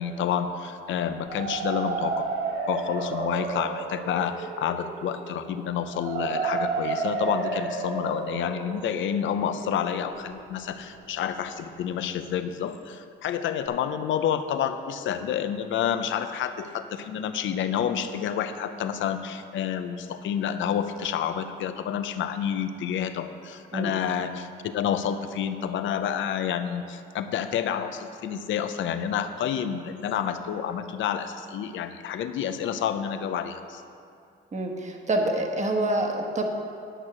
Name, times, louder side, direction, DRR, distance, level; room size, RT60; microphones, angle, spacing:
voice 1, 0.0-2.3 2.7-33.8, left 8 dB, 75° left, 9 dB, 0.7 m, -29 dB
sound 1, 1.1-10.9, right 4 dB, 75° right, 1.2 m, -32 dB
voice 2, 34.5-36.4, right 1 dB, 35° right, 2 dB, 1.4 m, -26 dB
11.0 x 6.5 x 6.1 m, 2.4 s
cardioid pair, 90°, 20 cm